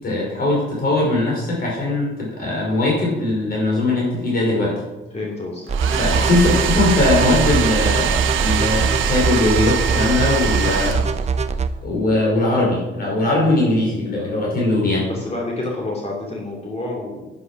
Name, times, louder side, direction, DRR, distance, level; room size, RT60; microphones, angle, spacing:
voice 1, 0.0-4.8 6.0-11.0 11.8-15.1, left 2 dB, 50° left, -3 dB, 5.0 m, -20 dB
voice 2, 5.1-6.3 15.0-17.3, left 2 dB, 30° left, -2 dB, 3.0 m, -29 dB
sound 1, 5.7-11.7, right 5 dB, 35° right, 0.7 m, -22 dB
Domestic sounds home sounds, 5.7-11.5, right 9 dB, 85° right, 1.1 m, -24 dB
10.0 x 10.0 x 6.1 m, 1.0 s
cardioid pair, 90°, 20 cm